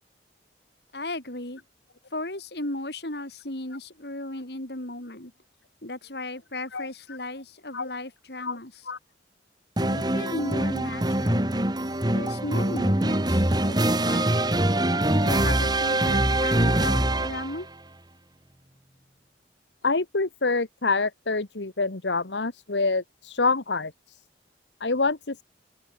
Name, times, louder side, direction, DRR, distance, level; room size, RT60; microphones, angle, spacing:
voice 1, 0.9-1.6 2.1-5.3 5.8-8.8 9.8-11.5 12.1-14.5 15.1-17.7, left 1 dB, 70° left, 4.5 m, -36 dB
sound 1, 9.8-17.6, right 1 dB, 25° right, 2.4 m, -24 dB
voice 2, 19.8-24.2 24.8-25.4, left 3 dB, 90° left, 1.5 m, -26 dB
open air
head